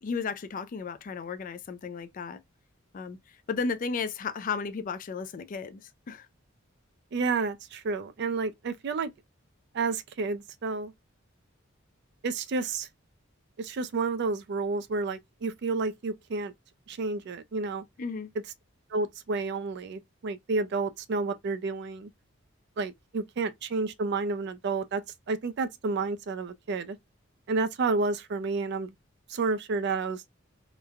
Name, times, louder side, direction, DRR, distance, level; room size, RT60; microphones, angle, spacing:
voice 1, 0.0-2.4 2.9-3.2 3.5-5.8 6.1-6.3 18.0-18.3, left 5 dB, 40° left, 0.3 m, -34 dB
voice 2, 7.1-9.1 9.7-10.9 12.2-12.9 13.6-16.5 16.9-17.8 18.9-22.1 22.8-25.0 25.3-27.0 27.5-28.9 29.3-30.2, right 4 dB, 55° right, 0.4 m, -30 dB
3.0 x 2.1 x 2.2 m
head